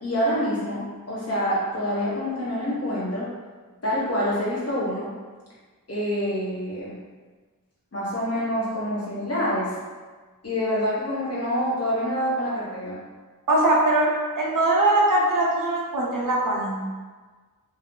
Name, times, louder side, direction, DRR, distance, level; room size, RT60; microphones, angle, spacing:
voice 1, 0.0-3.3 3.8-5.1 5.9-6.9 7.9-9.7 10.4-13.0, equal, 45° left, -8 dB, 1.1 m, -26 dB
voice 2, 13.5-14.1 14.4-16.8, right 2 dB, 65° right, -3 dB, 0.7 m, -21 dB
2.7 x 2.3 x 3.7 m, 1.4 s
wide cardioid pair, 100°, 36 cm